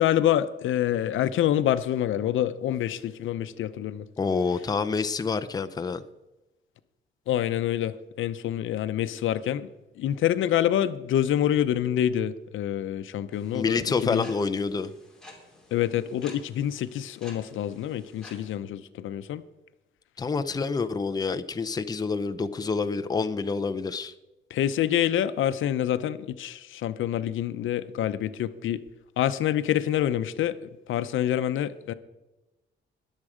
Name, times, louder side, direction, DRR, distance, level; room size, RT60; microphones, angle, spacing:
voice 1, 0.0-4.1 7.3-9.7 10.0-14.3 15.7-19.4 24.5-28.8 29.2-30.6 30.9-31.9, left 11 dB, 85° left, 13 dB, 0.7 m, -26 dB
voice 2, 4.2-6.0 13.5-14.9 20.2-24.1, left 4 dB, 20° left, 10 dB, 0.6 m, -27 dB
sound 1, 13.3-18.6, left 1 dB, 5° left, 2.9 m, -51 dB
20.5 x 7.5 x 5.0 m, 1.0 s
cardioid pair, 145°, 20 cm